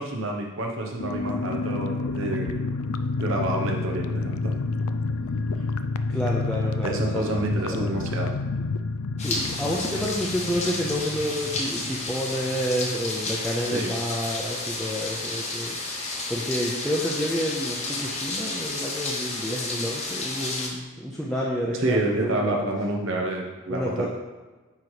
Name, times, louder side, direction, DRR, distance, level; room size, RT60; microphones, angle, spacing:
voice 1, 0.0-2.6 3.2-4.5 6.8-8.3 13.7-14.0 21.8-24.1, right 2 dB, 60° right, 1 dB, 0.9 m, -28 dB
sound 1, 1.0-13.3 13.6-13.7 14.0-14.3, left 3 dB, 80° left, 0.4 m, -29 dB
voice 2, 6.1-7.4 7.7-7.9 9.2-22.7 23.7-24.1, equal, 5° left, -6 dB, 0.6 m, -29 dB
sound 2, 9.2-20.7, left 2 dB, 30° left, 1.0 m, -31 dB
9.2 x 3.1 x 4.9 m, 1.3 s
head